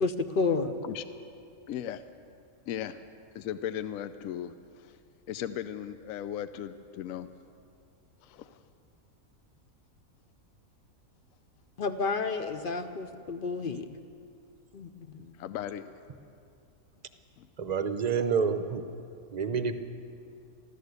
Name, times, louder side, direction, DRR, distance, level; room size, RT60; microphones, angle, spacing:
voice 1, 0.0-0.7 11.8-13.9 14.7-14.9 15.1-15.3, left 4 dB, 50° left, 9 dB, 0.7 m, -30 dB
voice 2, 1.7-2.0 2.7-3.0 3.3-4.5 4.8-4.9 5.3-7.3 8.2-8.5 15.4-15.9 17.4-17.5, left 10 dB, 75° left, 11 dB, 0.9 m, -37 dB
voice 3, 17.6-18.8 19.3-19.7, right 6 dB, 40° right, 9 dB, 0.6 m, -28 dB
13.5 x 13.0 x 8.1 m, 2.5 s
omnidirectional pair, 1.5 m